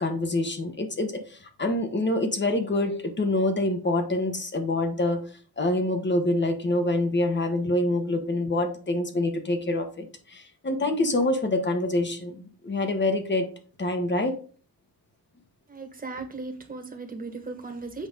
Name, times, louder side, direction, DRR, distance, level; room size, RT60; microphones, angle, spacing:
voice 1, 0.0-5.2 5.6-13.5 13.8-14.3, left 2 dB, 30° left, 6 dB, 1.4 m, -26 dB
voice 2, 15.7-18.1, right 3 dB, 20° right, 4 dB, 1.7 m, -37 dB
7.9 x 5.6 x 3.9 m, 0.41 s
wide cardioid pair, 120°, 38 cm